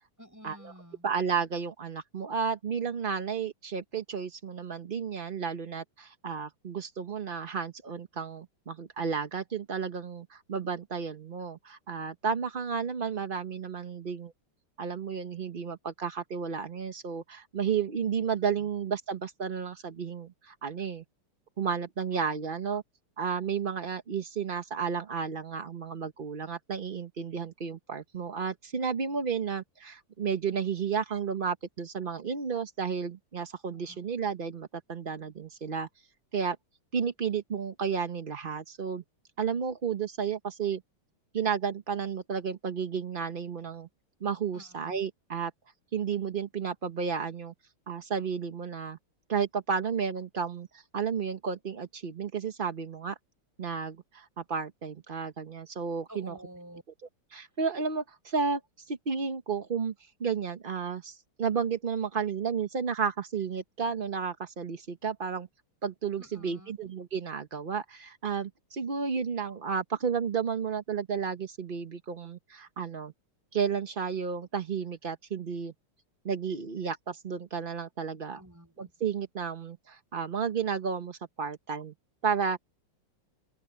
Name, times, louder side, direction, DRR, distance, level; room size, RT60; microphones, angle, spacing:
voice 1, 0.2-1.1 18.2-18.3 18.6-18.7 33.7-34.0 44.5-45.1 56.1-56.8 66.2-66.9 78.2-78.9, equal, 5° right, 6.3 m, -50 dB
voice 2, 1.0-14.3 14.8-21.0 21.6-22.8 23.2-35.9 36.3-36.6 36.9-39.0 39.4-40.8 41.3-43.9 44.2-45.5 45.9-47.5 47.9-49.0 49.3-53.2 53.6-56.4 57.3-65.5 65.8-73.1 73.5-75.7 76.2-78.4 78.8-81.9 82.2-82.6, right 6 dB, 55° right, 0.6 m, -32 dB
open air
omnidirectional pair, 2.4 m